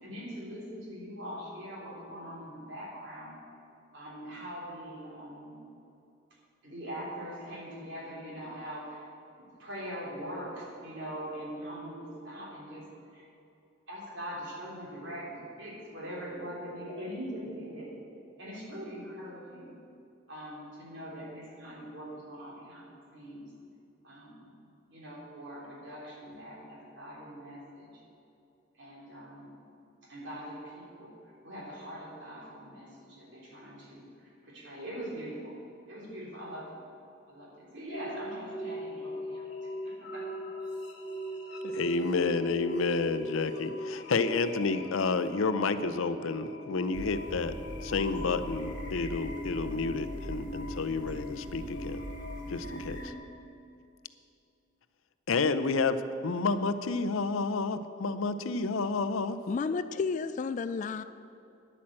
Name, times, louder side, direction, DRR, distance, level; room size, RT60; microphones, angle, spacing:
voice 1, 0.0-3.3 3.9-5.6 6.6-9.1 9.6-12.8 13.1-13.3 13.9-17.9 18.4-19.8 20.3-23.5 24.0-24.6 24.9-28.0 28.8-29.5 30.0-35.6 35.9-36.8 37.3-40.3, equal, 60° right, -4 dB, 3.6 m, -42 dB
sound 1, 37.9-53.1, left 1 dB, 55° left, 1.8 m, -40 dB
voice 2, 41.6-47.5 47.8-52.0 52.5-53.1 55.3-59.4, left 4 dB, 80° left, 12 dB, 0.6 m, -30 dB
sound 2, 46.9-53.1, equal, 40° right, 0.9 m, -42 dB
voice 3, 59.5-61.0, left 4 dB, 40° left, 13 dB, 0.3 m, -31 dB
10.0 x 8.6 x 7.5 m, 2.7 s
head